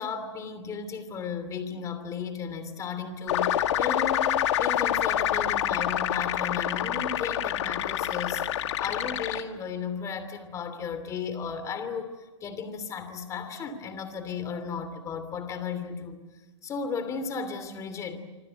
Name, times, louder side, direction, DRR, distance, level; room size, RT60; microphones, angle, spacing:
voice 1, 0.0-12.1 12.4-16.2 16.6-18.2, left 6 dB, 20° left, 2.8 m, -35 dB
sound 1, 3.3-9.4, left 11 dB, 65° left, 2.1 m, -27 dB
26.5 x 25.5 x 7.9 m
hypercardioid pair, 150°, 16 cm